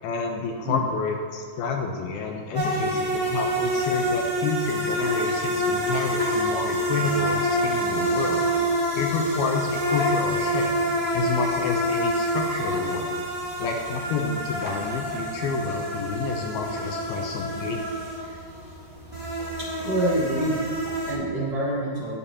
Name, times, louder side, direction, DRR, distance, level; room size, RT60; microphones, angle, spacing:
voice 1, 0.0-8.4 9.0-10.7 11.1-13.2 13.6-17.9, left 4 dB, 80° left, 2 dB, 2.5 m, -29 dB
sound 1, 2.5-21.1, equal, 5° right, 2.1 m, -27 dB
voice 2, 19.6-22.1, right 1 dB, 50° right, -7 dB, 2.1 m, -27 dB
19.0 x 6.9 x 2.9 m, 2.1 s
omnidirectional pair, 4.8 m